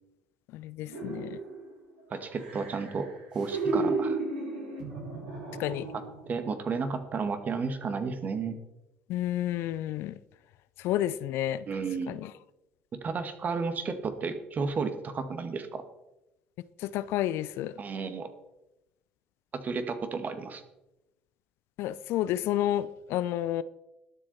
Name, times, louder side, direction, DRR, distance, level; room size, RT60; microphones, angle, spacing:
voice 1, 0.5-1.4 5.6-5.9 9.1-10.2 10.8-11.6 12.1-12.3 16.8-17.7 21.8-23.6, left 13 dB, 55° left, 0.5 m, -30 dB
sound 1, 0.9-1.7 2.1-6.3 6.6-6.8, right 3 dB, 75° right, 5.6 m, -34 dB
voice 2, 2.1-4.2 5.9-8.6 11.7-12.2 13.0-15.8 17.8-18.3 19.5-20.6, right 4 dB, 35° right, 1.9 m, -33 dB
21.0 x 7.6 x 4.3 m
figure-of-eight pair, 60°, 5 cm